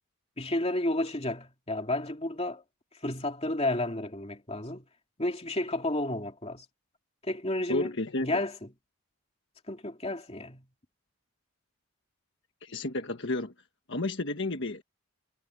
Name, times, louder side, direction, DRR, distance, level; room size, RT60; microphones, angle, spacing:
voice 1, 0.4-2.6 3.0-4.9 5.2-6.6 7.2-7.9 8.2-8.7 9.7-10.6, left 1 dB, 30° left, 2.6 m, -31 dB
voice 2, 7.7-8.4 12.6-13.5 13.9-14.8, left 2 dB, 55° left, 1.5 m, -31 dB
head